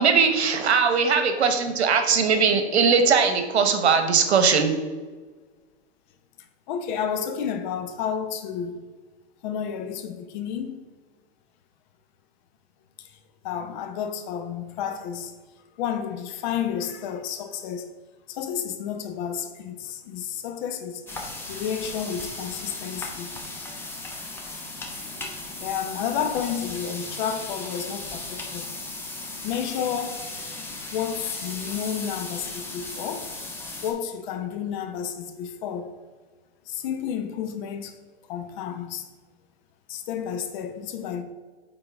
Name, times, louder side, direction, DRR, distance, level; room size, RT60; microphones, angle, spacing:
voice 1, 0.0-4.7, right 5 dB, 80° right, 1.1 m, -20 dB
voice 2, 6.7-8.9 9.4-10.8 13.0-13.1 13.4-15.3 15.8-17.9 18.3-21.0 21.5-23.3 25.6-28.7 29.4-30.3 30.9-33.3 33.8-35.9 36.7-37.9 38.3-39.1 39.9-41.2, left 8 dB, 45° left, 0.8 m, -31 dB
sound 1, 21.1-33.9, left 2 dB, 5° left, 0.7 m, -36 dB
8.9 x 3.9 x 3.5 m
hypercardioid pair, 130°, 32 cm